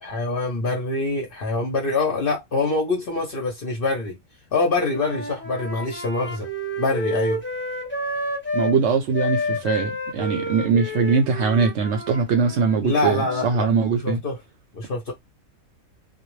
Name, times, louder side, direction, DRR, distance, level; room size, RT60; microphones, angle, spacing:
voice 1, 0.0-4.2 4.5-6.5 6.8-7.4 12.8-13.7 14.0-14.4 14.7-15.1, left 3 dB, 55° left, 0.7 m, -25 dB
Wind instrument woodwind instrument, 4.9-8.8 9.1-13.5, left 1 dB, 15° left, 0.5 m, -30 dB
voice 2, 8.5-14.2, right 5 dB, 65° right, 0.7 m, -21 dB
2.2 x 2.0 x 3.0 m
omnidirectional pair, 1.4 m